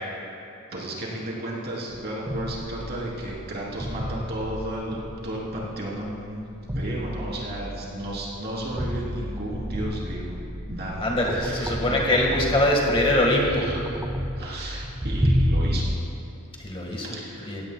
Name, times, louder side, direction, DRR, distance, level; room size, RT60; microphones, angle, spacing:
voice 1, 0.7-6.4 6.7-10.3 10.7-12.0 13.5-13.9 14.4-15.8 17.0-17.5, right 1 dB, 50° right, -4 dB, 3.2 m, -33 dB
sound 1, 1.9-16.0, equal, 10° right, 0.5 m, -30 dB
voice 2, 11.0-13.7 16.6-17.1 17.4-17.6, left 1 dB, 25° left, -1 dB, 1.5 m, -23 dB
17.5 x 16.0 x 2.3 m, 2.7 s
head